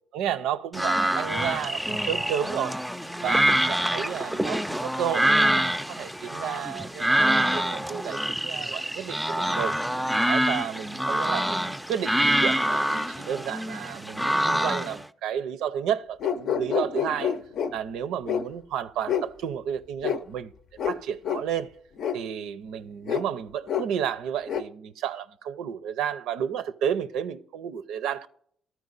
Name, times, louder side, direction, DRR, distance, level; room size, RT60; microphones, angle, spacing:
voice 1, 0.1-2.8 3.2-5.6 5.9-9.7 10.2-17.3 17.7-20.5 20.9-21.7 22.1-28.3, right 9 dB, 80° right, 0.5 m, -32 dB
sound 1, 0.7-15.0, right 1 dB, 5° right, 0.4 m, -26 dB
sound 2, 16.2-17.7 18.3-18.5 19.1-19.3 20.0-20.2 20.8-21.0 21.3-21.4 22.0-22.2 23.1-23.3 23.7-23.9 24.5-24.6, left 8 dB, 65° left, 0.6 m, -27 dB
12.5 x 4.6 x 3.9 m
supercardioid pair, 70°, 0 cm